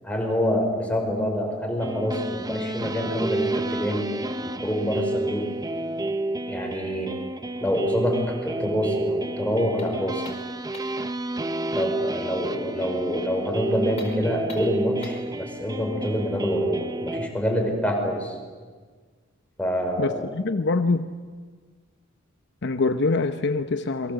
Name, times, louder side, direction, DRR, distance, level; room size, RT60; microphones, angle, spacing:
voice 1, 0.0-4.1 4.4-5.5 6.5-7.1 7.6-10.3 11.7-18.4 19.6-20.2, equal, 5° left, 1 dB, 5.4 m, -26 dB
sound 1, 1.8-17.3, right 2 dB, 20° right, 1.1 m, -30 dB
sound 2, 9.8-11.1 13.9-15.3, left 3 dB, 30° left, 5.0 m, -44 dB
voice 2, 20.0-21.1 22.6-24.1, left 3 dB, 55° left, 9 dB, 0.9 m, -24 dB
28.0 x 23.5 x 7.9 m, 1.5 s
head